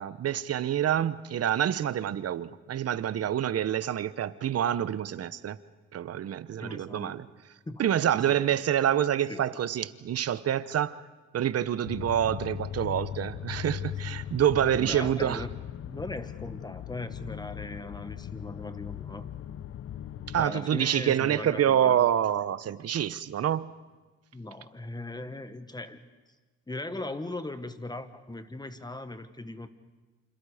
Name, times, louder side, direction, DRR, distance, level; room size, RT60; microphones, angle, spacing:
voice 1, 0.0-5.6 5.9-7.3 7.8-11.0 11.3-15.4 20.3-23.7, right 10 dB, 55° right, 0.9 m, -27 dB
voice 2, 6.6-7.2 7.7-7.8 8.3-8.4 9.3-9.4 14.8-15.5 15.9-19.3 20.4-22.1 22.7-22.8 24.3-26.0 26.7-29.7, left 2 dB, 15° left, 1.4 m, -38 dB
sound 1, 11.8-20.5, left 10 dB, 50° left, 0.7 m, -38 dB
27.5 x 26.5 x 5.0 m
cardioid pair, 90°, 30 cm